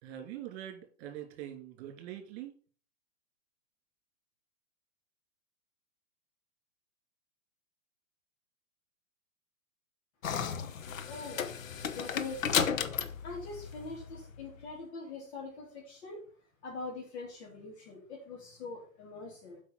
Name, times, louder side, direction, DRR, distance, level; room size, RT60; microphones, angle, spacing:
voice 1, 0.0-2.5, right 11 dB, 40° right, 5 dB, 2.8 m, -43 dB
sound 1, 10.2-14.5, left 7 dB, 70° left, 1.2 m, -34 dB
voice 2, 11.1-11.5 11.8-12.7 13.2-16.2 16.6-19.6, left 3 dB, 50° left, -3 dB, 3.5 m, -43 dB
8.0 x 5.6 x 5.6 m, 0.40 s
hypercardioid pair, 115°, 41 cm